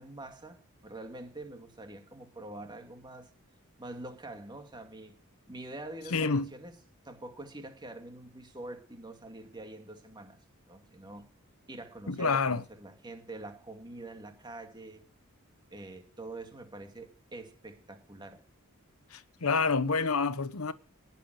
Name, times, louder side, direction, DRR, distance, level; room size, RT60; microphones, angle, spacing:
voice 1, 0.0-3.3 3.8-5.2 5.5-6.7 7.0-11.3 11.7-15.0 15.7-18.4, right 2 dB, 20° right, 2.2 m, -45 dB
voice 2, 6.1-6.5 12.1-12.6 19.1-20.7, left 4 dB, 75° left, 1.0 m, -28 dB
19.0 x 7.3 x 6.3 m
head